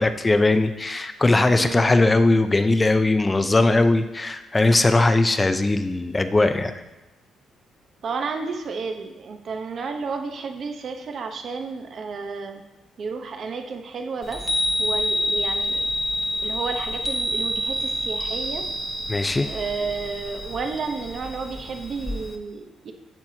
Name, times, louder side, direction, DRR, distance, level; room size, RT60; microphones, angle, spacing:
voice 1, 0.0-6.8 19.1-19.5, left 2 dB, 20° left, 9 dB, 0.6 m, -19 dB
voice 2, 1.6-2.0 8.0-12.6 13.0-14.5 14.8-15.9 16.4-18.6 19.5-22.9, right 4 dB, 55° right, 6 dB, 0.9 m, -31 dB
Chime, 14.2-22.4, equal, 5° left, 1.0 m, -28 dB
8.9 x 7.4 x 2.8 m, 1.1 s
cardioid pair, 90°, 0 cm